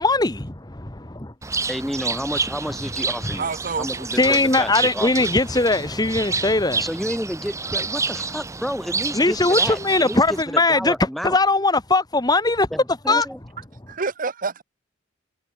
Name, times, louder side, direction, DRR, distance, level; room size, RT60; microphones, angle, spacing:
voice 1, 0.0-1.3 4.2-6.8 9.1-10.9 11.2-12.7 13.1-13.2, left 2 dB, 20° left, 1.4 m, -20 dB
Bird, 1.4-10.4, right 4 dB, 15° right, 0.8 m, -29 dB
voice 2, 1.7-3.5 3.8-5.3 6.8-11.4 12.7-13.4, equal, ahead, 1.1 m, -31 dB
voice 3, 3.4-4.5 13.9-14.6, right 4 dB, 45° right, 1.0 m, -28 dB
head